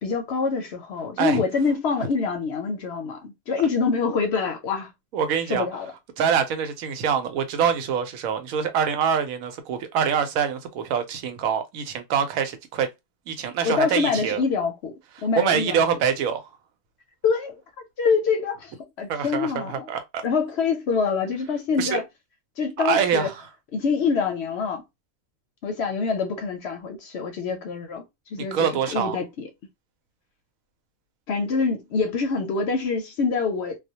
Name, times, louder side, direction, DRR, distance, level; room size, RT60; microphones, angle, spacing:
voice 1, 0.0-4.9 5.5-5.9 13.6-15.0 15.2-15.8 17.2-17.6 18.0-19.9 20.2-22.0 22.6-23.3 23.7-24.8 25.6-28.0 28.3-29.5 31.3-33.8, left 5 dB, 65° left, 0.7 m, -25 dB
voice 2, 5.1-5.7 6.2-12.9 13.3-14.4 15.4-16.5 19.1-20.2 21.8-22.0 22.8-23.3 28.5-29.2, right 7 dB, 85° right, 1.0 m, -25 dB
2.3 x 2.1 x 2.7 m
omnidirectional pair, 1.4 m